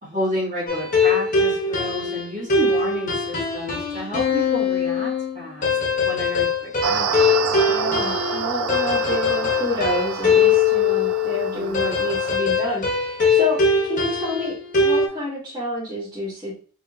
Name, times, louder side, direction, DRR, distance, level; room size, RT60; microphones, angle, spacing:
voice 1, 0.0-5.7 6.0-7.1 11.5-11.9, left 1 dB, 40° right, -7 dB, 1.9 m, -30 dB
sound 1, 0.7-15.1, left 4 dB, 40° left, 1.0 m, -21 dB
sound 2, 6.8-12.4, right 7 dB, 85° right, 0.3 m, -28 dB
voice 2, 7.6-14.5 14.8-16.5, left 1 dB, 20° right, -11 dB, 1.6 m, -28 dB
4.1 x 2.8 x 2.5 m, 0.40 s
head